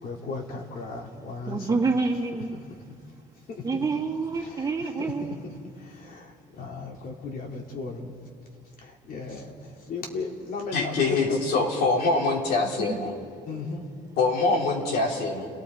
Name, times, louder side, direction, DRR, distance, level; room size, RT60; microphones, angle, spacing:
voice 1, 0.0-1.8 2.9-3.0 3.5-3.8 4.4-5.4 5.7-8.1 8.8-11.6 13.5-13.9, left 3 dB, 60° left, 0 dB, 3.1 m, -36 dB
voice 2, 1.5-2.6 3.6-5.4 12.6-13.0, right 4 dB, 20° right, -2 dB, 2.7 m, -27 dB
voice 3, 10.7-13.1 14.2-15.5, left 3 dB, 75° left, -1 dB, 4.0 m, -24 dB
29.5 x 18.5 x 4.8 m, 2.3 s
cardioid pair, 110°, 17 cm